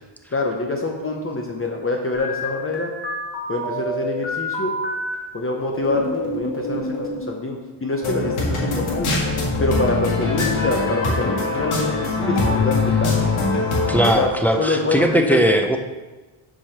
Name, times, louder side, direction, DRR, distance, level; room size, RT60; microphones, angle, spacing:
voice 1, 0.3-2.9 3.5-4.7 5.3-9.1 9.6-13.3 14.1-14.3 14.6-15.4, left 2 dB, 25° left, 1 dB, 0.8 m, -25 dB
sound 1, 2.1-5.1 5.6-7.2, equal, 55° left, 2.3 m, -28 dB
sound 2, 8.0-14.1, left 3 dB, 80° left, 1.8 m, -22 dB
voice 2, 13.9-15.8, right 1 dB, 5° left, 3 dB, 0.5 m, -18 dB
7.2 x 4.9 x 5.8 m, 1.2 s
wide cardioid pair, 150°, 49 cm